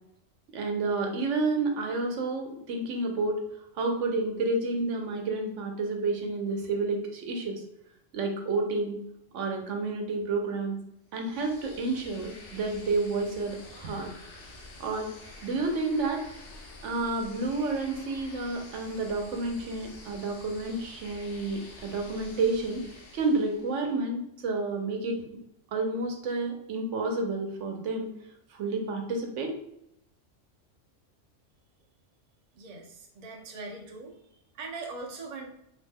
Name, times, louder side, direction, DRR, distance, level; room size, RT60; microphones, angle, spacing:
voice 1, 0.5-3.4 3.7-7.6 8.1-9.0 9.3-10.8 11.1-14.1 14.8-15.1 15.4-16.2 16.8-22.8 23.1-25.2 25.7-28.1 28.5-29.6, right 3 dB, 75° right, 3 dB, 0.9 m, -30 dB
sound 1, 11.1-23.9, left 2 dB, 60° left, 0.7 m, -48 dB
voice 2, 32.5-34.1 34.6-35.5, right 3 dB, 50° right, 0 dB, 0.5 m, -40 dB
2.9 x 2.1 x 3.3 m, 0.79 s
omnidirectional pair, 1.3 m